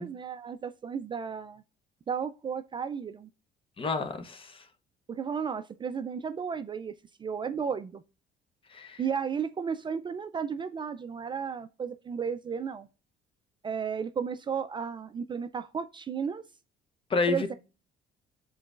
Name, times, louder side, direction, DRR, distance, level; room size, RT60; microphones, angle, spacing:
voice 1, 0.0-1.6 2.1-3.3 5.1-6.9 7.2-8.0 9.0-12.9 13.6-16.4 17.3-17.6, right 6 dB, 30° right, 0.4 m, -33 dB
voice 2, 3.8-4.7 8.7-9.0 17.1-17.6, left 4 dB, 30° left, 0.8 m, -30 dB
10.5 x 3.9 x 2.4 m
cardioid pair, 110°, 17 cm